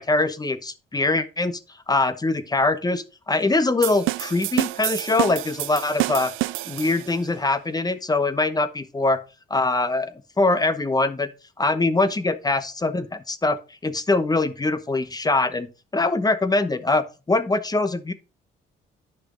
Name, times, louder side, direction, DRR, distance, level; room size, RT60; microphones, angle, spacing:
voice 1, 0.0-1.6 1.9-6.3 6.7-9.2 9.5-11.3 11.6-13.6 13.8-15.7 15.9-18.1, left 2 dB, 20° left, 1.0 m, -23 dB
sound 1, 3.8-7.3, right 19 dB, 90° right, 0.4 m, -28 dB
10.0 x 5.8 x 3.9 m
cardioid pair, 90°, 20 cm